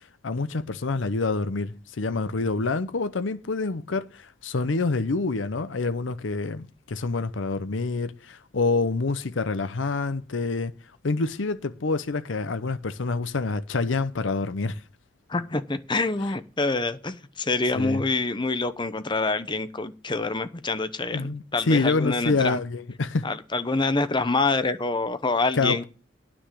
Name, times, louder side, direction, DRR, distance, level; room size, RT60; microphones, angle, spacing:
voice 1, 0.2-10.7 11.0-14.8 17.7-18.0 21.1-23.3 25.5-25.8, left 3 dB, 70° left, 0.7 m, -27 dB
voice 2, 15.3-22.6 23.2-25.8, left 3 dB, 25° left, 0.8 m, -26 dB
9.9 x 6.1 x 8.2 m
head